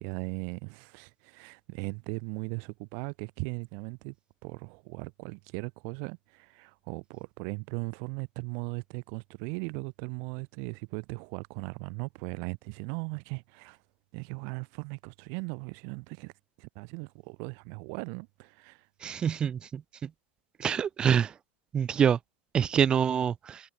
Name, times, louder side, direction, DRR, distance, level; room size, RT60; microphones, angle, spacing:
voice 1, 0.0-4.1 4.4-13.8 14.1-16.3 16.6-18.9, right 40 dB or more, 40° right, 7.3 m, -38 dB
voice 2, 19.0-19.8 20.6-21.3 21.7-22.2 22.5-23.6, right 8 dB, 15° right, 1.6 m, -25 dB
supercardioid pair, 180°, 6 cm